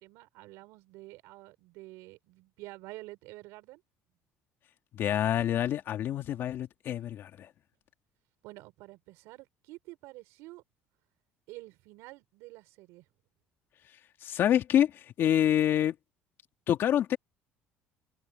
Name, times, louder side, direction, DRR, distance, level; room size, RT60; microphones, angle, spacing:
voice 1, 0.0-3.8 8.4-10.6 11.5-13.1, right 20 dB, 85° right, 5.2 m, -48 dB
voice 2, 4.9-7.5 14.2-16.0 16.7-17.2, left 10 dB, 55° left, 2.3 m, -27 dB
cardioid pair, 110°, 5 cm